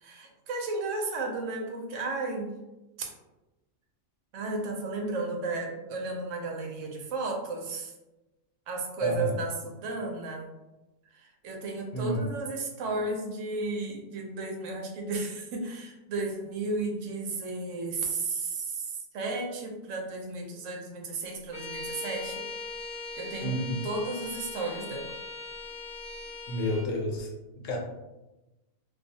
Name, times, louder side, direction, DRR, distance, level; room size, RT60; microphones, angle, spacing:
voice 1, 0.0-2.5 3.0-3.1 4.3-7.9 8.7-10.5 11.1-22.5 23.2-23.5 23.8-25.1, right 3 dB, 80° right, 1 dB, 0.9 m, -33 dB
voice 2, 9.0-9.4 11.9-12.3 23.4-23.9 26.5-27.8, left 1 dB, 85° left, 0 dB, 1.0 m, -30 dB
Bowed string instrument, 21.5-26.9, left 3 dB, ahead, 1.1 m, -40 dB
2.3 x 2.3 x 2.7 m, 1.0 s
omnidirectional pair, 1.3 m